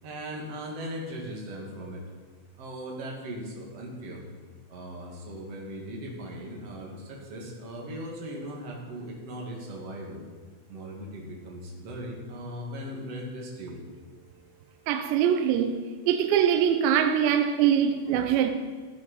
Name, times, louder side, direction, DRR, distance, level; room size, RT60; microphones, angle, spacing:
voice 1, 0.0-2.0 2.6-4.2 4.7-10.2 10.7-13.8, equal, 45° right, 2.2 m, -38 dB
voice 2, 14.9-15.8 16.1-18.5, right 9 dB, 80° right, 2.8 m, -23 dB
16.5 x 8.1 x 5.3 m
omnidirectional pair, 5.4 m